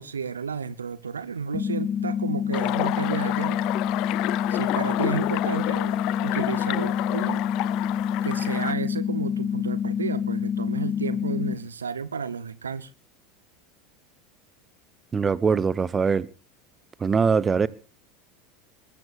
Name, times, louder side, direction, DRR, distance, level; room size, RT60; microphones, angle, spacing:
voice 1, 0.0-3.6 4.5-7.4 8.2-12.9, right 6 dB, 85° right, 0.8 m, -32 dB
sound 1, 1.5-11.5, left 8 dB, 30° left, 2.0 m, -27 dB
sound 2, 2.5-8.7, left 19 dB, 55° left, 0.7 m, -30 dB
voice 2, 15.1-16.3 17.0-17.7, right 5 dB, 25° right, 0.9 m, -22 dB
21.0 x 19.5 x 2.5 m
figure-of-eight pair, 80°, 0 cm